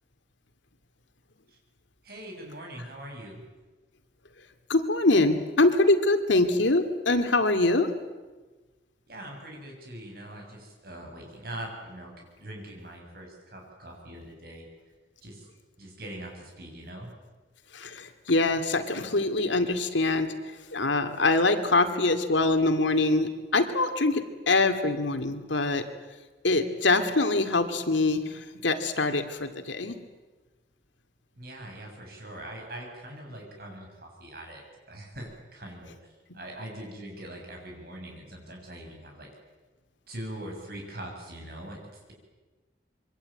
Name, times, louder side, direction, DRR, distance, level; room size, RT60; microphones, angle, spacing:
voice 1, 2.0-3.5 9.1-14.7 15.2-15.5 15.8-17.1 31.3-34.6 34.9-39.3 40.1-42.1, right 1 dB, 55° right, 1 dB, 7.7 m, -42 dB
voice 2, 4.7-7.9 17.7-20.3 20.7-25.8 26.4-30.0, left 2 dB, 85° left, 8 dB, 2.4 m, -24 dB
26.0 x 23.5 x 9.0 m, 1.3 s
head